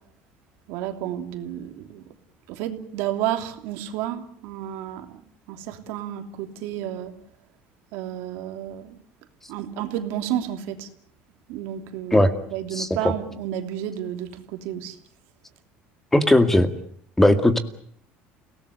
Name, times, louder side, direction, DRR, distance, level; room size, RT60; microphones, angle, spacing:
voice 1, 0.7-2.0 2.5-5.2 5.5-7.1 7.9-9.0 9.5-10.9 11.5-15.0, right 11 dB, 80° right, 6 dB, 3.0 m, -31 dB
voice 2, 12.7-13.1 16.1-16.7 17.2-17.6, left 1 dB, 10° left, 8 dB, 2.1 m, -18 dB
29.5 x 18.5 x 8.2 m, 0.62 s
cardioid pair, 135°, 4 cm